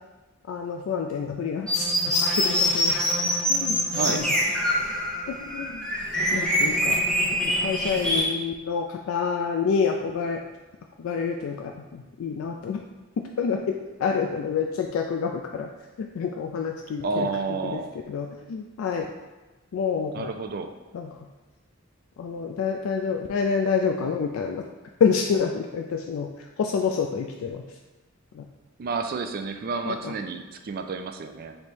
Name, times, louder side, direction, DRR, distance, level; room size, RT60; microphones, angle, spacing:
voice 1, 0.5-3.0 3.5-3.8 4.1-4.3 5.3-5.9 6.3-10.4 11.0-12.8 13.2-15.7 16.0-17.3 18.1-19.1 19.7-20.3 20.9-21.2 22.2-24.7 25.0-27.6 28.3-28.5 29.9-30.1, left 6 dB, 80° left, 2 dB, 0.3 m, -28 dB
sound 1, 1.7-8.2, equal, 5° left, 0.7 m, -24 dB
voice 2, 3.9-4.3 17.0-17.9 20.1-20.7 28.8-31.6, right 4 dB, 50° right, 7 dB, 0.3 m, -30 dB
3.3 x 3.0 x 4.4 m, 1.2 s
head